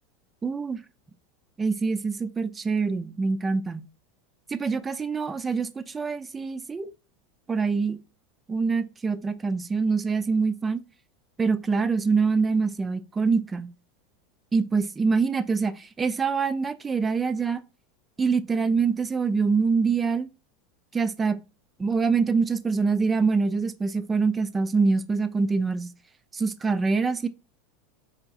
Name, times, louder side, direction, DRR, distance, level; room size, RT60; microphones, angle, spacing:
voice 1, 0.4-0.8 1.6-3.8 4.5-6.9 7.5-8.0 8.5-10.8 11.4-13.7 14.5-17.6 18.2-20.3 20.9-21.4 21.8-25.9 26.3-27.3, right 4 dB, 20° right, 0.3 m, -25 dB
3.7 x 2.8 x 2.4 m
figure-of-eight pair, 80°, 0 cm